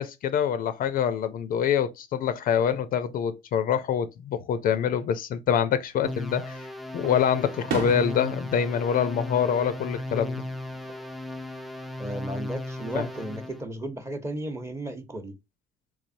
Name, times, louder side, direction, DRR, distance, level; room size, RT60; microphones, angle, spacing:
voice 1, 0.0-6.7 6.9-10.5 12.9-13.1, left 8 dB, 60° left, 0.5 m, -25 dB
Fireworks, 5.9-6.6 7.0-10.2 10.5-11.1 12.6-13.4, right 4 dB, 85° right, 1.2 m, -38 dB
sound 1, 6.0-13.6, left 1 dB, ahead, 0.3 m, -36 dB
voice 2, 12.0-15.4, right 1 dB, 15° right, 0.8 m, -34 dB
3.5 x 3.2 x 2.6 m
cardioid pair, 110°, 17 cm